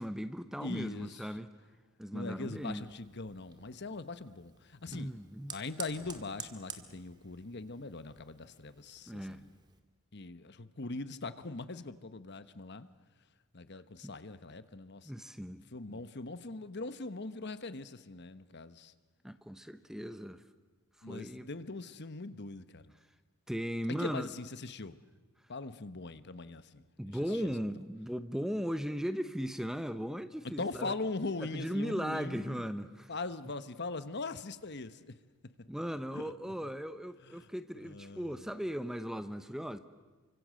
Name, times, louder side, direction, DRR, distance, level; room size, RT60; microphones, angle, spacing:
voice 1, 0.0-1.5 2.0-2.9 4.9-5.6 9.1-9.4 14.0-14.1 15.1-15.6 15.9-16.0 19.2-20.4 21.1-21.5 23.5-24.3 27.0-30.9 31.4-33.1 35.7-39.8, equal, ahead, 0.9 m, -37 dB
voice 2, 0.6-1.1 2.1-5.1 5.5-9.5 10.1-12.9 13.5-15.1 15.7-18.9 21.0-22.8 23.9-25.0 25.5-27.2 27.4-27.5 30.6-32.6 33.1-35.1 36.1-36.3 37.4-37.5 37.8-38.3, left 3 dB, 50° left, 1.1 m, -41 dB
Fire, 2.5-9.8, right 5 dB, 20° right, 2.3 m, -51 dB
29.5 x 25.5 x 7.7 m
head